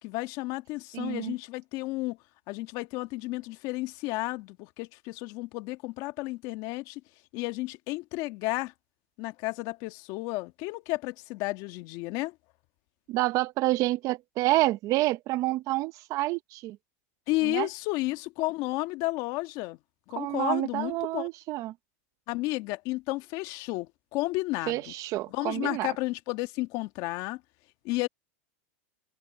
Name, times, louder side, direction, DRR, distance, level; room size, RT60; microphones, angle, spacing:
voice 1, 0.0-2.2 2.5-7.0 7.3-8.7 9.2-12.3 17.3-19.8 20.1-21.3 22.3-24.9 25.3-27.4 27.8-28.1, left 21 dB, 50° left, 1.5 m, -32 dB
voice 2, 0.9-1.3 13.1-16.8 17.4-17.7 20.2-21.7 24.7-25.9, right 18 dB, 45° right, 0.8 m, -28 dB
supercardioid pair, 125°, 8 cm